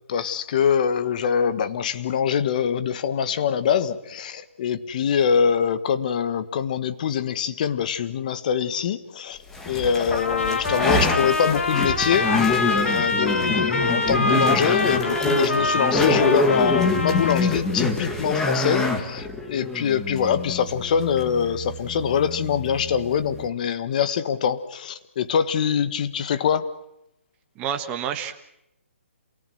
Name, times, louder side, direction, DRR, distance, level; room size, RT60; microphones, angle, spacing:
voice 1, 0.1-9.4 9.6-26.7, left 7 dB, 35° left, 1.4 m, -24 dB
sound 1, 9.5-23.5, left 2 dB, 5° left, 1.9 m, -26 dB
Trumpet, 10.1-17.6, left 3 dB, 75° left, 4.1 m, -25 dB
voice 2, 27.6-28.3, right 8 dB, 15° right, 1.5 m, -28 dB
28.0 x 18.5 x 7.9 m
hypercardioid pair, 165°, 7 cm